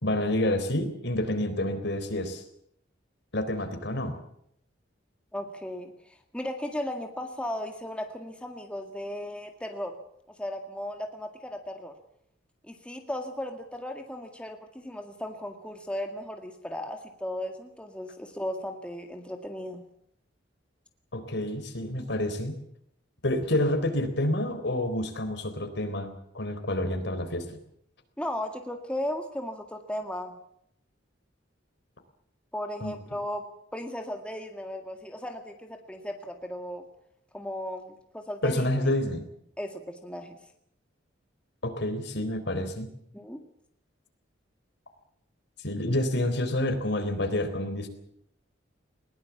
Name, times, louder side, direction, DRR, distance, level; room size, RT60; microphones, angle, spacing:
voice 1, 0.0-2.4 3.3-4.1 21.1-22.6 23.2-27.6 32.8-32.9 38.4-39.3 41.6-42.9 45.6-47.9, left 1 dB, 65° left, 8 dB, 3.8 m, -28 dB
voice 2, 5.3-10.0 10.4-11.9 12.6-19.8 28.2-30.3 32.5-33.5 33.7-36.8 37.3-38.9 39.6-40.4 43.1-43.4, left 1 dB, 5° left, 4 dB, 1.9 m, -36 dB
21.0 x 19.0 x 7.2 m, 0.73 s
head